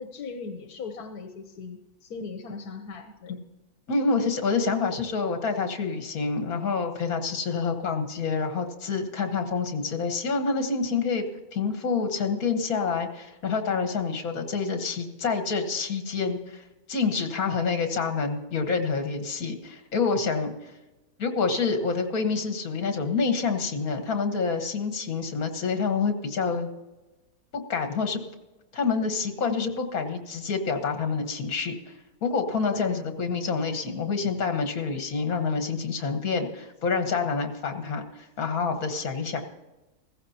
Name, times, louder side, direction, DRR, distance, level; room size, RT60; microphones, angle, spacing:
voice 1, 0.0-3.4 32.7-33.0, left 5 dB, 90° left, 6 dB, 1.4 m, -38 dB
voice 2, 3.9-11.3 11.5-20.5 21.2-26.7 27.7-28.2 28.7-31.9 32.2-39.4, left 4 dB, 70° left, 6 dB, 1.9 m, -27 dB
16.0 x 15.5 x 2.9 m, 1.1 s
omnidirectional pair, 1.6 m